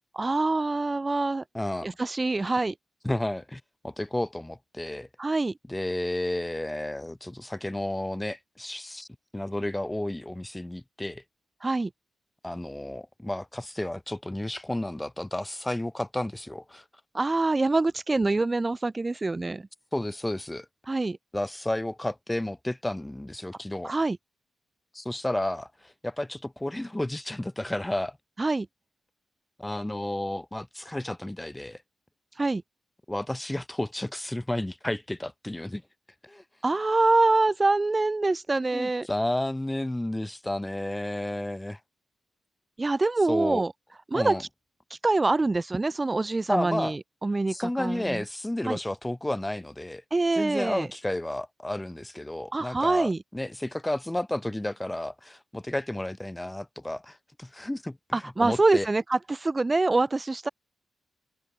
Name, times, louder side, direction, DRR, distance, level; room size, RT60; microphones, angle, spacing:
voice 1, 0.1-1.4 1.8-2.7 5.2-5.5 11.6-11.9 17.1-19.6 20.9-21.2 23.8-24.2 28.4-28.7 32.3-32.6 36.6-39.1 42.8-43.7 44.1-44.5 44.9-48.2 48.6-48.8 50.1-50.9 52.5-53.2 58.1-60.5, right 3 dB, 20° right, 0.4 m, -25 dB
voice 2, 1.5-1.9 3.0-5.1 5.7-9.1 9.3-11.2 12.4-16.8 19.9-20.6 21.3-23.9 24.9-28.2 29.6-31.8 33.1-35.8 36.2-36.4 38.7-41.8 43.3-43.6 44.1-44.4 46.5-46.9 47.5-50.0 50.4-58.9, left 1 dB, 10° left, 3.4 m, -32 dB
wide cardioid pair, 150°, 0 cm